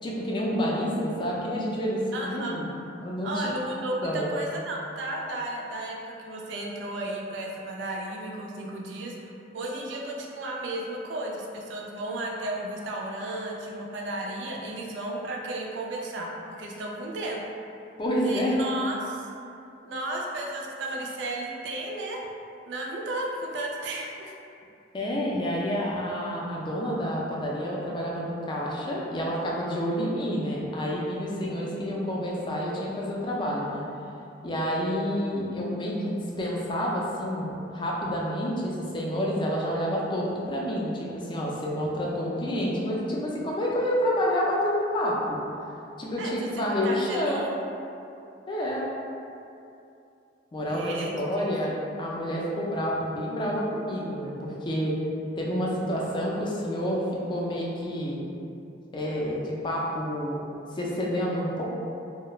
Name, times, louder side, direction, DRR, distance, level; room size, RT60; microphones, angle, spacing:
voice 1, 0.0-2.7 3.0-3.5 4.0-4.3 18.0-18.5 24.9-33.9 34.4-45.4 46.0-47.5 48.5-48.9 50.5-51.7 52.0-55.0 55.4-58.2 58.9-60.4 60.7-61.6, equal, 25° left, -4 dB, 0.3 m, -29 dB
voice 2, 2.1-2.6 3.2-16.3 16.6-17.4 18.2-19.3 19.8-22.2 22.7-24.3 46.2-46.3 46.8-47.4 50.7-51.8, right 1 dB, 75° right, -1 dB, 0.4 m, -34 dB
2.3 x 2.0 x 3.0 m, 2.6 s
head